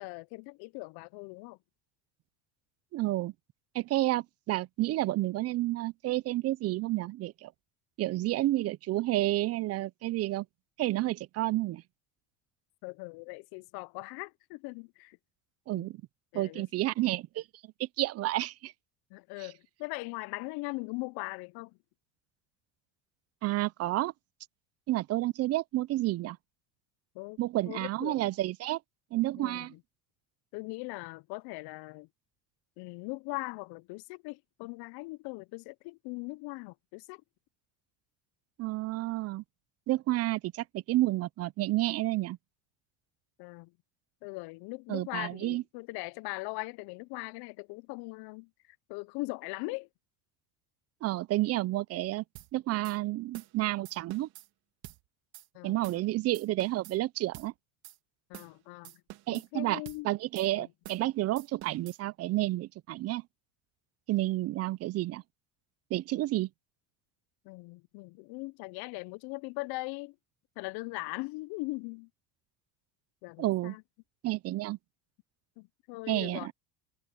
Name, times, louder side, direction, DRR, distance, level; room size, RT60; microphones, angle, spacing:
voice 1, 0.0-1.6 12.8-15.2 15.7-15.9 16.3-16.7 19.1-21.8 27.1-27.4 27.7-28.3 29.4-29.7 30.5-32.1 32.8-37.2 43.4-43.7 44.2-48.5 48.9-49.9 55.5-55.8 58.3-59.0 59.3-60.1 60.6-60.7 67.4-70.2 70.6-72.1 73.2-73.8 75.6-76.5, left 25 dB, 65° left, 0.6 m, -40 dB
voice 2, 2.9-3.3 3.7-7.5 8.0-10.5 10.8-11.8 15.7-16.0 16.3-17.4 17.8-18.7 23.4-24.1 24.9-26.4 27.4-28.8 29.1-29.7 38.6-39.4 39.9-42.4 44.9-45.6 51.0-52.2 52.5-54.3 55.6-57.5 59.3-63.2 64.1-65.2 65.9-66.5 73.4-73.7 74.2-74.8 76.1-76.5, right 17 dB, 40° right, 0.4 m, -30 dB
sound 1, 52.4-52.5 52.8-53.0 53.3-53.6 53.9-54.5 54.8-55.0 55.3-55.5 55.8-56.1 56.3-57.0 57.3-57.5 57.8-58.0 58.3-58.6 58.8-59.5 59.9-60.0 60.4-60.5 60.8-61.1 61.4-62.0, right 17 dB, 60° right, 1.8 m, -48 dB
cardioid pair, 125°, 41 cm